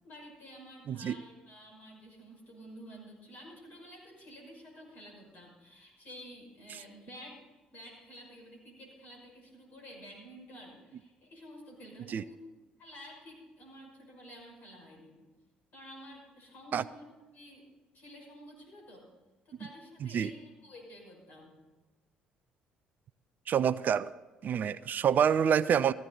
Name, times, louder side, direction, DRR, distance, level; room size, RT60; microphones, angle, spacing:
voice 1, 0.0-7.4 7.7-12.4 12.8-15.2 15.7-17.6 17.9-19.1 19.4-21.6, equal, 55° left, 0 dB, 6.0 m, -51 dB
voice 2, 23.5-24.1 24.4-25.9, right 8 dB, 50° right, 18 dB, 0.4 m, -27 dB
15.0 x 14.5 x 4.0 m, 1.3 s
hypercardioid pair, 50°, 4 cm